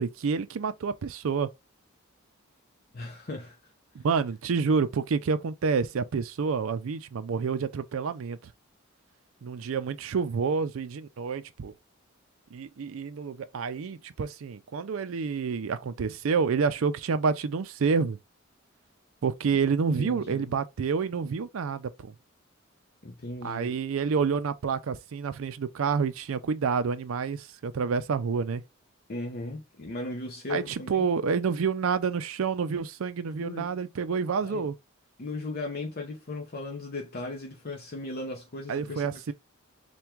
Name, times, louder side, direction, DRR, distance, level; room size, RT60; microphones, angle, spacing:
voice 1, 0.0-1.5 3.9-8.5 9.4-11.7 12.5-18.2 19.2-22.1 23.4-28.6 30.5-34.8 38.7-39.3, right 5 dB, 70° right, 0.4 m, -28 dB
voice 2, 2.9-3.6 20.0-20.5 23.0-23.7 29.1-31.1 33.4-33.7 34.4-34.7 35.2-39.1, left 2 dB, 45° left, 0.7 m, -37 dB
3.5 x 2.2 x 4.4 m
head